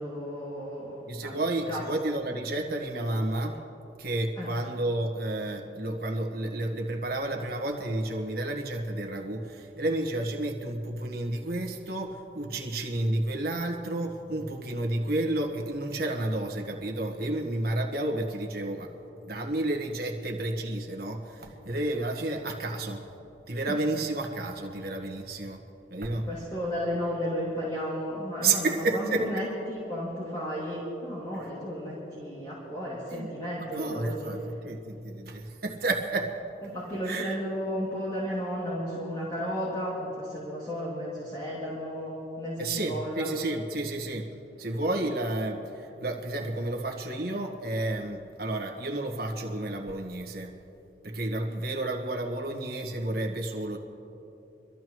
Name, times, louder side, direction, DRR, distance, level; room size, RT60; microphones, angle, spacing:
voice 1, 0.0-1.4 1.7-1.8 4.4-4.5 26.1-34.3 36.6-43.3, equal, 25° left, -7 dB, 2.5 m, -33 dB
voice 2, 1.1-3.6 4.0-18.9 19.2-23.0 23.5-25.6 25.9-26.3 28.4-29.2 33.1-33.3 33.7-36.4 37.0-37.4 42.6-44.3 44.6-50.5 51.0-53.8, right 2 dB, 55° right, 2 dB, 1.4 m, -31 dB
24.5 x 13.5 x 3.1 m, 2.9 s
head